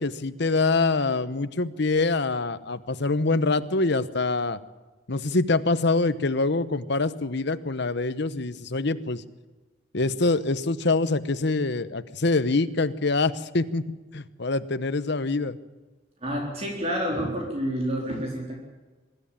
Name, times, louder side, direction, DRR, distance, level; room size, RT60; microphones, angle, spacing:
voice 1, 0.0-4.6 5.1-9.2 9.9-13.8 14.1-15.6, left 3 dB, 60° left, 13 dB, 1.0 m, -25 dB
voice 2, 16.2-18.6, equal, 30° right, -1 dB, 3.9 m, -29 dB
24.0 x 13.0 x 8.8 m, 1.3 s
head